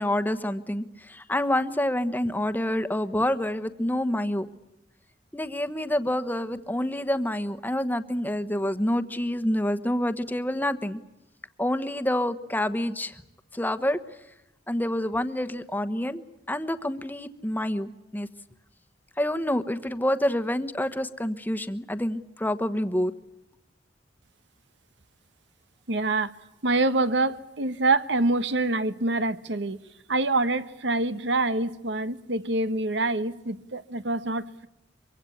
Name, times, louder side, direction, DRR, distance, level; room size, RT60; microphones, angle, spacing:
voice 1, 0.0-4.5 5.3-11.0 11.6-13.2 13.5-14.0 14.7-18.3 19.2-23.1, left 1 dB, 10° left, 1.2 m, -27 dB
voice 2, 25.9-26.3 26.6-29.8 30.1-34.7, right 2 dB, 80° right, 1.3 m, -26 dB
24.5 x 24.0 x 8.6 m
head